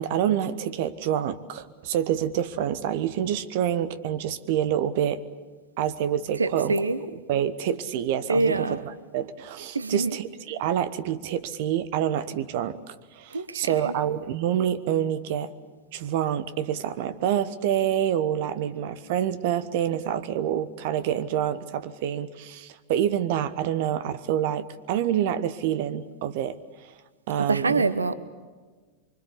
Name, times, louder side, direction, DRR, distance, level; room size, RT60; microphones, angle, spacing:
voice 1, 0.0-5.2 5.8-6.8 7.3-8.7 9.1-15.5 15.9-26.6 26.8-26.9 27.3-27.8, right 10 dB, 50° right, 1.1 m, -27 dB
voice 2, 6.3-7.0 8.3-8.8 9.7-10.2 13.3-14.0 27.4-28.1, right 3 dB, 75° right, 1.0 m, -25 dB
25.5 x 25.0 x 8.4 m
figure-of-eight pair, 90°, 0 cm